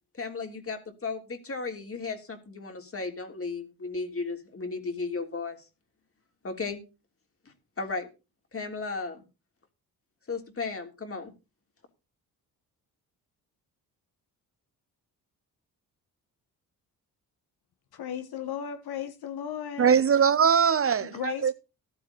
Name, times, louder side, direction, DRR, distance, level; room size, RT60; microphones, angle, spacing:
voice 1, 0.1-5.6 6.4-6.8 7.4-8.1 8.5-9.2 10.3-11.3, left 4 dB, 35° left, 3.3 m, -35 dB
voice 2, 17.9-19.9 21.0-21.5, left 9 dB, 75° left, 1.6 m, -35 dB
voice 3, 19.8-21.5, right 7 dB, 35° right, 0.5 m, -21 dB
14.0 x 12.0 x 4.0 m
cardioid pair, 85°, 38 cm